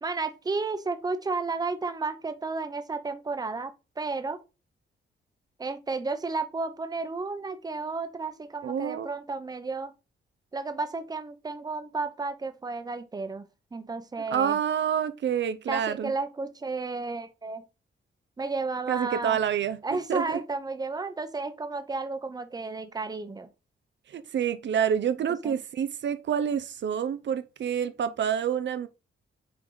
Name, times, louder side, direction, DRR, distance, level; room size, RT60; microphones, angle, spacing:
voice 1, 0.0-4.4 5.6-9.9 10.5-13.5 13.7-14.6 15.7-17.6 18.4-19.4 19.8-23.5 25.4-25.5, right 3 dB, 20° right, 0.9 m, -32 dB
voice 2, 8.6-9.1 14.3-16.1 18.9-19.8 20.1-20.4 24.1-28.9, right 8 dB, 65° right, 0.7 m, -28 dB
8.5 x 4.7 x 3.9 m
wide cardioid pair, 175°, 20 cm